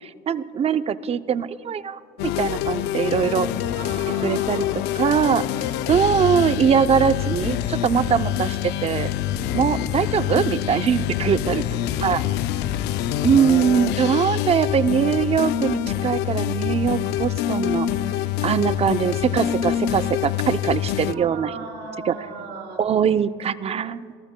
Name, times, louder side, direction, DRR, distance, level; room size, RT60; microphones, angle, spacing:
voice 1, 0.0-3.5 4.2-4.7 5.0-5.5 5.9-9.1 9.5-11.6 12.0-12.2 13.2-17.9 18.4-21.5 22.1-22.2 22.8-24.0, right 7 dB, 35° right, 13 dB, 0.6 m, -22 dB
sound 1, 2.2-21.1, left 12 dB, 90° left, 0.5 m, -25 dB
voice 2, 3.7-4.8 5.9-6.2 9.7-10.1 11.5-13.3 21.1-22.8, right 4 dB, 80° right, 1 dB, 3.7 m, -39 dB
27.5 x 19.0 x 2.2 m, 2.4 s
cardioid pair, 110°, 17 cm